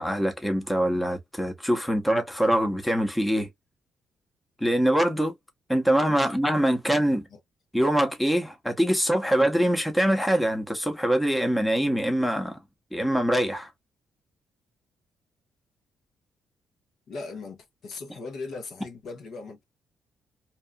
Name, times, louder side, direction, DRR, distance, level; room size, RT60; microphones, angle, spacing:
voice 1, 0.0-3.5 4.6-5.3 5.7-7.3 7.7-12.6 12.9-13.7, equal, 5° left, 0.8 m, -24 dB
voice 2, 17.1-19.6, left 3 dB, 65° left, 1.1 m, -39 dB
2.8 x 2.4 x 2.2 m
cardioid pair, 90°, 0 cm